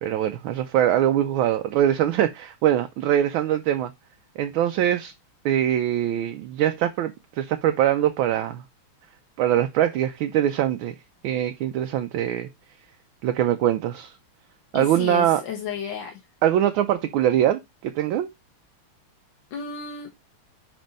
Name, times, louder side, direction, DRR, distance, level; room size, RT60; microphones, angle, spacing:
voice 1, 0.0-3.9 4.4-5.1 5.4-8.6 9.4-10.9 11.2-12.5 13.2-14.1 14.7-15.4 16.4-18.3, right 11 dB, 75° right, 1.3 m, -23 dB
voice 2, 14.7-16.3 19.5-20.1, left 6 dB, 65° left, 1.7 m, -33 dB
5.1 x 4.4 x 5.2 m
omnidirectional pair, 2.3 m